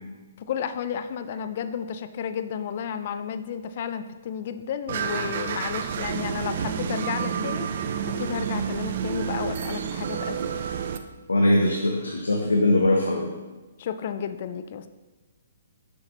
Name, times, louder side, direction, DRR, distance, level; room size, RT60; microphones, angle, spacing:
voice 1, 0.4-7.7 8.2-10.6 13.8-14.9, left 8 dB, 50° left, 10 dB, 0.4 m, -32 dB
sound 1, 4.9-11.0, right 7 dB, 55° right, 0.4 m, -29 dB
voice 2, 11.3-13.3, left 1 dB, 85° left, 1 dB, 0.7 m, -21 dB
6.8 x 5.8 x 2.9 m, 1.2 s
hypercardioid pair, 135°, 0 cm